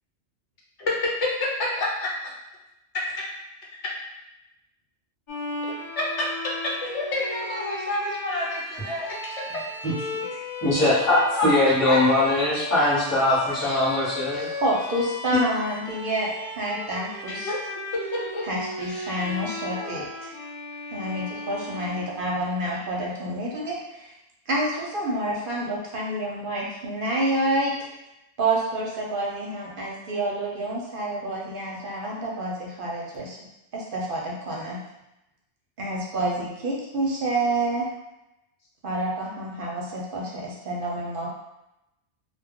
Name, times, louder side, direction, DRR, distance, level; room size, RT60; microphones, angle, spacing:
voice 1, 1.2-2.1 5.6-6.1 6.8-9.1 11.1-12.0 17.3-17.6 18.1-18.4 18.8-19.4 19.7-20.0 22.7-22.9, left 2 dB, 75° left, -3 dB, 1.0 m, -29 dB
Bowed string instrument, 5.3-22.7, left 2 dB, 35° left, 0.5 m, -36 dB
voice 2, 10.6-14.5 15.3-15.4, left 2 dB, 15° left, -9 dB, 0.9 m, -21 dB
voice 3, 14.3-16.3 16.5-17.5 18.4-20.3 20.9-24.1 24.5-27.9 28.4-33.4 33.7-34.8 35.8-37.9 38.8-41.3, right 1 dB, 60° right, -3 dB, 0.7 m, -28 dB
2.2 x 2.1 x 3.5 m, 0.91 s
omnidirectional pair, 1.2 m